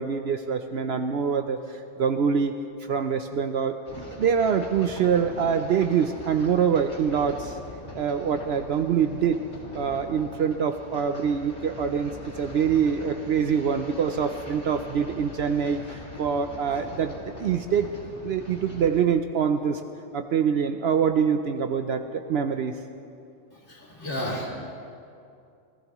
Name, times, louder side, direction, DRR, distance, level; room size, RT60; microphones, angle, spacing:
voice 1, 0.0-2.5 2.8-7.6 7.9-9.4 9.7-17.1 17.4-17.9 18.2-19.8 20.1-22.8, right 7 dB, 65° right, 7 dB, 0.8 m, -25 dB
sound 1, 3.8-18.9, left 1 dB, 75° left, 2.6 m, -42 dB
voice 2, 23.7-24.5, equal, 45° left, -2 dB, 2.6 m, -32 dB
27.5 x 15.0 x 3.1 m, 2.5 s
omnidirectional pair, 1.2 m